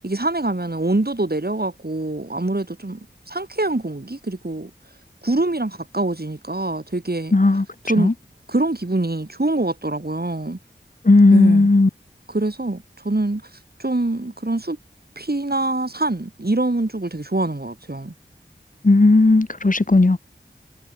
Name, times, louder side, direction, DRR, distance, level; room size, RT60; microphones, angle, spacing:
voice 1, 0.0-4.7 5.2-7.3 7.8-8.1 8.5-10.6 11.3-11.7 12.3-14.8 15.2-18.1, right 2 dB, 55° right, 5.5 m, -24 dB
voice 2, 7.3-7.6 8.0-8.1 11.0-11.9 18.8-20.2, left 2 dB, 45° left, 1.2 m, -14 dB
wide cardioid pair, 40°, 19 cm